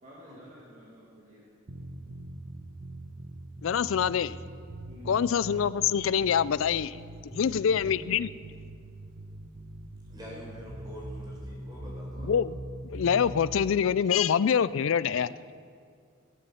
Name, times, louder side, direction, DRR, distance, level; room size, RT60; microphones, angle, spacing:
voice 1, 0.0-1.4 4.9-5.3 7.4-7.8, left 1 dB, 35° right, -6 dB, 2.3 m, -50 dB
sound 1, 1.7-13.6, right 1 dB, 65° right, 1.1 m, -42 dB
voice 2, 3.6-4.4 5.1-7.0 7.3-8.3 12.2-12.6 12.9-15.3, left 7 dB, 75° left, 18 dB, 0.4 m, -25 dB
voice 3, 10.1-12.3, equal, 20° right, -4 dB, 4.8 m, -45 dB
16.0 x 12.5 x 5.7 m, 2.3 s
head